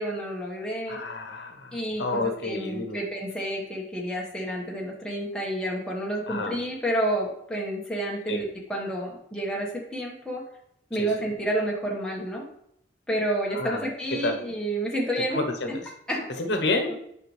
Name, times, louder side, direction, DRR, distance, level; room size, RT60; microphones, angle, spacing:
voice 1, 0.0-1.0 1.7-10.4 10.9-12.5 13.1-15.8 16.1-16.3 16.8-16.9, right 1 dB, 5° left, -3 dB, 1.3 m, -30 dB
voice 2, 0.9-3.0 6.3-6.5 8.3-8.4 11.0-11.1 13.5-13.8 14.2-14.4 15.3-15.7 16.4-16.9, left 2 dB, 85° left, 5 dB, 0.9 m, -29 dB
9.5 x 5.5 x 3.2 m, 0.74 s
head